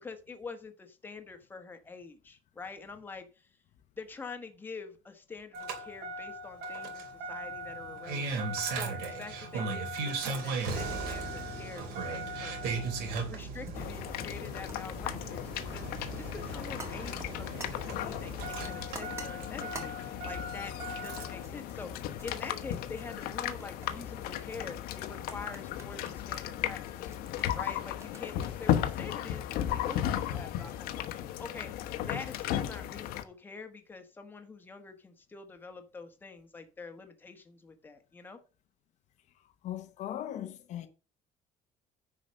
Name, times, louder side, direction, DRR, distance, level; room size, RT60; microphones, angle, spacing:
voice 1, 0.0-3.5 4.0-27.2 27.5-38.4, left 4 dB, 10° left, 1.3 m, -46 dB
Engine starting, 5.5-21.5 22.7-22.8, right 3 dB, 85° right, 3.0 m, -37 dB
sound 1, 13.3-29.7, right 2 dB, 15° right, 1.8 m, -52 dB
sound 2, 13.7-33.2, left 11 dB, 75° left, 1.2 m, -35 dB
voice 2, 39.6-40.9, left 11 dB, 50° left, 0.9 m, -38 dB
10.0 x 4.9 x 6.4 m
cardioid pair, 180°, 16 cm